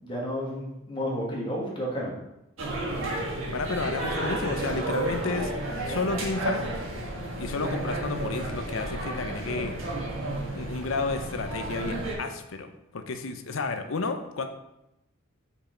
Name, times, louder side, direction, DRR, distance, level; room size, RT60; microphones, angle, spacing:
voice 1, 0.0-2.1, equal, 25° left, -4 dB, 1.4 m, -31 dB
sound 1, 2.6-12.1, right 1 dB, 70° right, 1.6 m, -32 dB
voice 2, 3.5-5.5 5.9-6.6 7.4-9.7 10.5-14.5, left 3 dB, 75° left, 7 dB, 0.6 m, -31 dB
5.5 x 4.8 x 4.4 m, 0.88 s
head